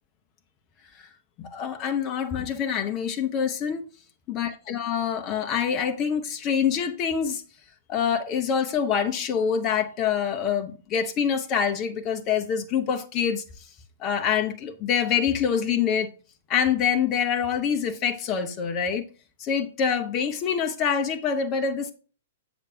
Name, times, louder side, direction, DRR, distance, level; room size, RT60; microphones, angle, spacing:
voice 1, 1.4-3.8 4.3-7.4 7.9-13.4 14.0-16.1 16.5-19.0 19.4-21.9, left 7 dB, 30° left, 0.7 m, -25 dB
7.5 x 6.0 x 2.7 m
figure-of-eight pair, 110°, 0 cm